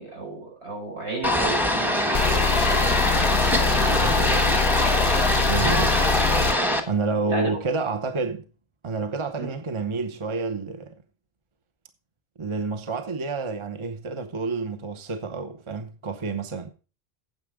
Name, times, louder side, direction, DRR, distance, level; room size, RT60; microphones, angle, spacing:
voice 1, 0.0-2.8 3.6-4.1 7.3-7.5 9.4-9.5, right 3 dB, 75° right, 5.5 m, -34 dB
sound 1, 1.2-6.8, equal, ahead, 1.3 m, -23 dB
sound 2, 2.1-6.5, left 7 dB, 50° left, 0.7 m, -24 dB
voice 2, 4.0-4.6 5.5-5.9 6.9-8.5 8.8-11.0 12.4-16.7, right 4 dB, 30° right, 0.9 m, -29 dB
9.5 x 7.8 x 4.9 m
omnidirectional pair, 1.1 m